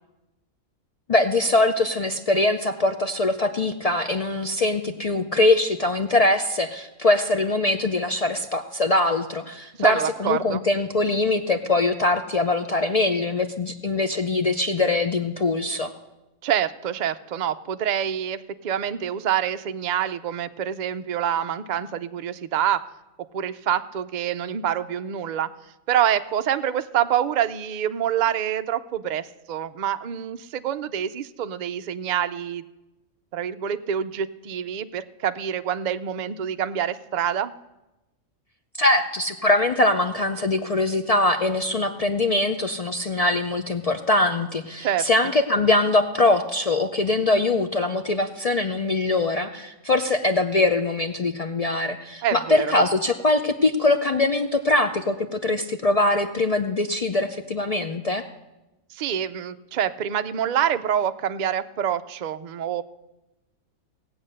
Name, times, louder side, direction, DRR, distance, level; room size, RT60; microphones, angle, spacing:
voice 1, 1.1-15.9 38.8-58.3, left 2 dB, 65° left, 7 dB, 0.3 m, -22 dB
voice 2, 9.8-10.6 16.4-22.9 23.3-25.5 25.9-32.7 33.3-37.5 44.8-45.1 52.2-52.7 58.9-62.8, right 9 dB, 85° right, 10 dB, 0.4 m, -26 dB
18.0 x 8.0 x 6.6 m, 1.0 s
omnidirectional pair, 1.4 m